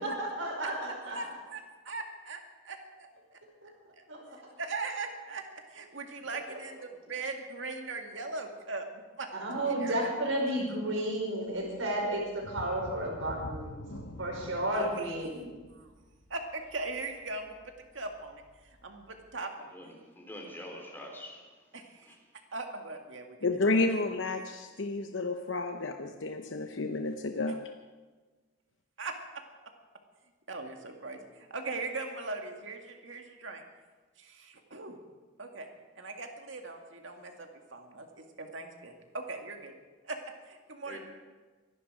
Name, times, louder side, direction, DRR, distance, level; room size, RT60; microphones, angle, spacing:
voice 1, 0.0-1.2 3.6-3.7 4.1-4.2 6.5-6.6 9.3-13.8 14.2-15.5, right 1 dB, 85° right, -1 dB, 5.0 m, -32 dB
voice 2, 1.1-3.4 4.0-4.1 4.6-5.4 5.7-8.9 9.2-9.3 9.7-10.1 14.7-15.1 15.7-15.9 16.3-19.7 21.7-22.2 22.5-23.6 23.9-24.0 29.0-29.1 30.5-33.6 34.2-35.0 35.4-35.7 36.0-39.7 40.0-40.2 40.5-41.0, right 3 dB, 70° right, 4 dB, 2.0 m, -40 dB
sound 1, 12.4-17.9 18.3-18.4 18.9-19.0, left 1 dB, 85° left, 1.2 m, -45 dB
voice 3, 19.7-21.6 22.1-22.2 40.8-41.0, left 1 dB, 10° left, 1 dB, 3.3 m, -45 dB
voice 4, 23.4-27.6, left 3 dB, 70° left, 5 dB, 0.9 m, -31 dB
24.0 x 11.0 x 4.9 m, 1.3 s
head